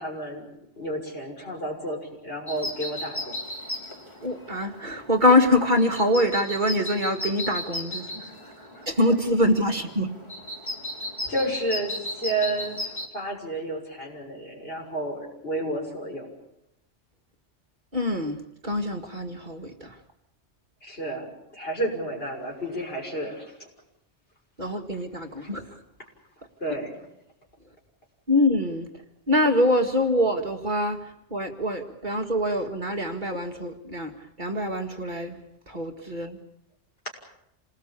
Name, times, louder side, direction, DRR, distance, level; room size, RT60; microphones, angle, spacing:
voice 1, 0.0-3.4 8.1-8.9 11.3-16.3 20.8-23.6 25.4-25.5 26.6-26.9, right 1 dB, 55° left, 0 dB, 6.7 m, -31 dB
sound 1, 2.5-13.1, left 1 dB, 25° left, 3.2 m, -36 dB
voice 2, 4.2-8.0 8.9-10.1 17.9-20.0 24.6-25.7 28.3-28.9 29.3-31.0 31.3-34.1 34.4-35.4 35.7-36.4, left 1 dB, 40° right, 2 dB, 2.2 m, -24 dB
27.5 x 19.5 x 8.6 m, 0.83 s
omnidirectional pair, 1.2 m